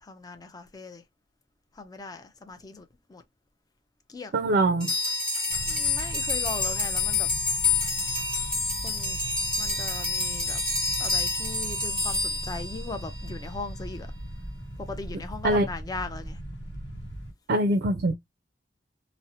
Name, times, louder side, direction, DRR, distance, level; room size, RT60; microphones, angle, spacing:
voice 1, 0.0-1.0 1.7-3.2 4.1-4.3 5.7-7.3 8.8-9.2 9.6-10.6 11.0-14.1 14.8-16.4, left 3 dB, 20° left, 0.4 m, -39 dB
voice 2, 4.3-4.9 15.4-15.7 17.5-18.1, right 1 dB, 55° right, 0.4 m, -23 dB
sound 1, 4.8-13.3, left 3 dB, 5° left, 0.8 m, -28 dB
sound 2, 5.5-17.3, equal, 80° left, 0.8 m, -39 dB
2.7 x 2.0 x 2.6 m
head